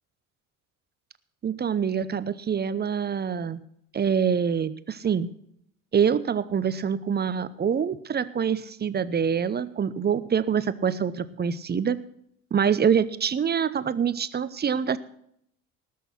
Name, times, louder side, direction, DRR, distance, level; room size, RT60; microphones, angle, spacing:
voice 1, 1.4-3.6 3.9-5.3 5.9-12.0 12.5-15.0, right 7 dB, 25° right, 16 dB, 0.8 m, -25 dB
19.0 x 6.6 x 6.0 m, 0.70 s
figure-of-eight pair, 65°, 43 cm